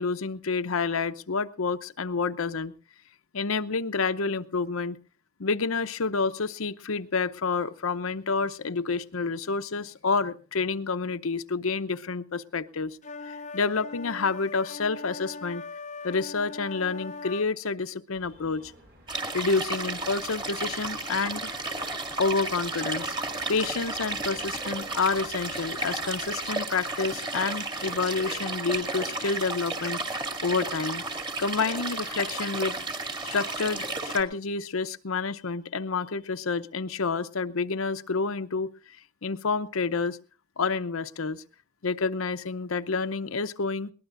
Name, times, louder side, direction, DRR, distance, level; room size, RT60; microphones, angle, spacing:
voice 1, 0.0-2.7 3.3-5.0 5.4-13.0 13.3-15.6 16.0-18.7 19.3-21.5 22.2-23.1 23.5-30.0 30.4-31.0 31.4-32.8 33.2-38.7 39.2-40.2 40.6-41.4 41.8-43.9, left 4 dB, 80° left, 12 dB, 0.8 m, -29 dB
sound 1, 13.0-17.5, left 3 dB, 35° left, 0.7 m, -40 dB
sound 2, 18.1-26.5, right 1 dB, 50° right, 5.4 m, -54 dB
sound 3, 19.1-34.2, right 2 dB, 25° right, 2.2 m, -33 dB
21.5 x 19.5 x 2.6 m, 0.39 s
head